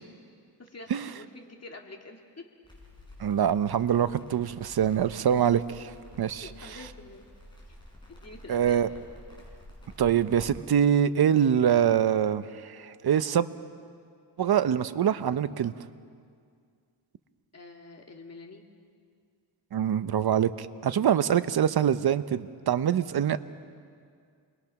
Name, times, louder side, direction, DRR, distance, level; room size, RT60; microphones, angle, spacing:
voice 1, 0.6-2.5 6.4-7.3 7.7-7.8 8.1-8.9 17.5-18.7, left 3 dB, 35° left, 1 dB, 2.7 m, -46 dB
Crackle, 2.6-10.5, left 1 dB, 10° left, 6.9 m, -50 dB
voice 2, 3.2-5.9 6.2-6.5 8.5-8.9 10.0-13.5 14.4-15.7 19.7-23.4, right 9 dB, 60° right, 12 dB, 0.8 m, -24 dB
28.5 x 21.5 x 6.0 m, 2.2 s
wide cardioid pair, 105°, 44 cm